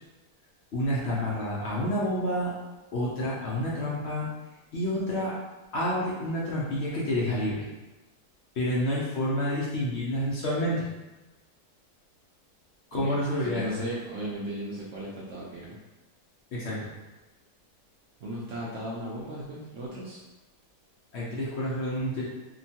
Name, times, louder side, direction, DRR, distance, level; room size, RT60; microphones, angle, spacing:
voice 1, 0.7-2.5 2.9-4.3 4.7-5.4 5.7-7.7 8.5-10.9 12.9-13.8 16.5-16.9 21.1-22.2, left 1 dB, 70° left, -6 dB, 0.6 m, -29 dB
voice 2, 13.4-15.8 18.2-20.2, right 1 dB, 70° right, -6 dB, 0.7 m, -36 dB
2.9 x 2.2 x 2.7 m, 1.1 s
omnidirectional pair, 1.8 m